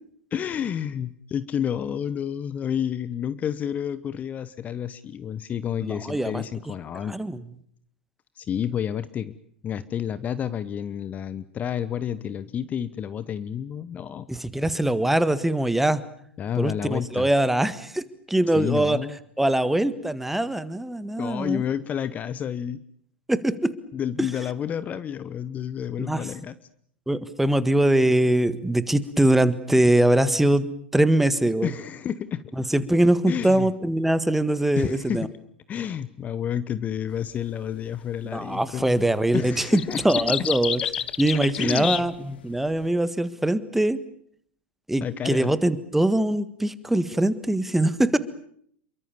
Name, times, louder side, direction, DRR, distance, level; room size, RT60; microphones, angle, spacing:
voice 1, 0.3-7.2 8.4-9.3 9.6-14.3 16.4-17.3 18.5-19.2 21.2-22.8 23.9-26.6 31.6-32.4 33.3-33.7 34.8-35.3 35.7-39.1 39.3-40.2 41.6-42.0 45.0-45.6, left 9 dB, 25° left, 15 dB, 1.1 m, -30 dB
voice 2, 5.8-6.4 7.0-7.4 14.3-16.0 16.6-19.0 19.4-21.6 23.3-23.7 26.0-26.2 27.1-30.7 30.9-31.7 32.6-35.3 38.3-40.8 41.2-44.0 44.9-48.2, right 1 dB, 5° right, 14 dB, 1.7 m, -22 dB
sound 1, 37.1-37.4 38.5-38.9 39.2-42.8, left 9 dB, 65° left, 1.0 m, -30 dB
28.0 x 23.5 x 7.2 m, 0.65 s
figure-of-eight pair, 90°, 6 cm